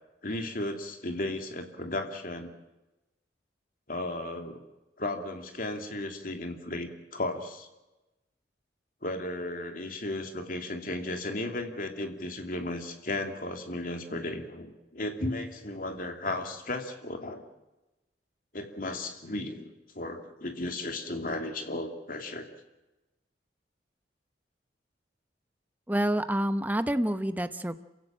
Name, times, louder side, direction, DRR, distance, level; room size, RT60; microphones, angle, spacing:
voice 1, 0.2-2.5 3.9-4.6 5.0-7.7 9.0-17.5 18.5-19.7 19.9-22.5, left 2 dB, 50° left, 4 dB, 2.8 m, -35 dB
voice 2, 25.9-27.8, right 1 dB, 10° right, 10 dB, 0.9 m, -28 dB
27.5 x 16.5 x 7.5 m, 1.0 s
head